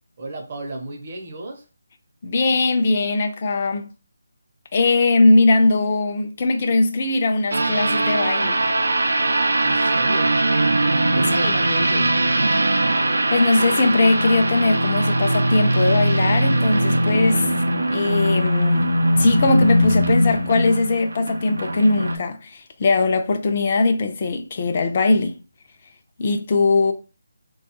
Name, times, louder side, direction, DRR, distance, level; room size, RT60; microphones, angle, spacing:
voice 1, 0.2-1.6 9.6-10.3 11.1-12.1, right 2 dB, 35° right, 0.8 m, -32 dB
voice 2, 2.2-3.9 4.7-8.7 13.3-17.5 17.9-18.9 19.2-25.4 26.2-26.9, left 3 dB, 35° left, 0.5 m, -20 dB
sound 1, 7.5-22.2, right 1 dB, 85° right, 0.5 m, -20 dB
3.7 x 2.3 x 2.8 m
figure-of-eight pair, 170°, 0 cm